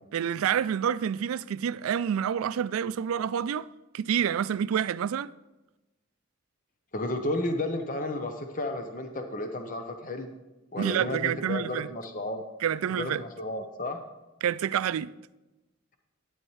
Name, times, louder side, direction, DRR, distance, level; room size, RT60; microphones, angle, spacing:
voice 1, 0.1-3.7 3.9-5.3 10.8-11.9 12.6-13.2 14.4-15.1, right 8 dB, 90° right, 0.3 m, -28 dB
voice 2, 6.9-10.3 10.7-12.4 12.9-14.0, left 2 dB, 40° left, 0.8 m, -32 dB
12.0 x 9.6 x 3.2 m
head